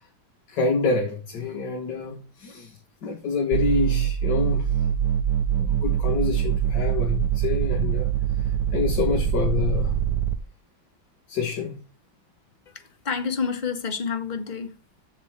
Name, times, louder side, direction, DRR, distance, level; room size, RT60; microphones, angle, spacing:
voice 1, 0.5-2.7 3.0-4.7 5.6-8.1 8.7-9.9 11.3-11.8, left 5 dB, 60° left, 2.0 m, -27 dB
sound 1, 3.5-10.4, right 10 dB, 70° right, 1.3 m, -24 dB
voice 2, 12.7-14.8, left 5 dB, 30° left, 1.0 m, -29 dB
7.2 x 7.2 x 7.3 m
omnidirectional pair, 2.2 m